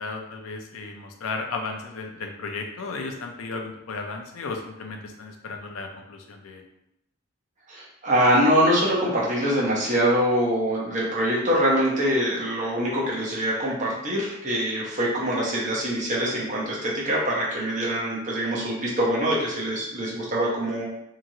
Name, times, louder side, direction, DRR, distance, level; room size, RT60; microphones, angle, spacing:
voice 1, 0.0-6.6, left 3 dB, 70° left, 3 dB, 0.5 m, -34 dB
voice 2, 7.7-20.8, equal, 35° right, -5 dB, 0.8 m, -24 dB
2.9 x 2.5 x 2.7 m, 0.83 s
head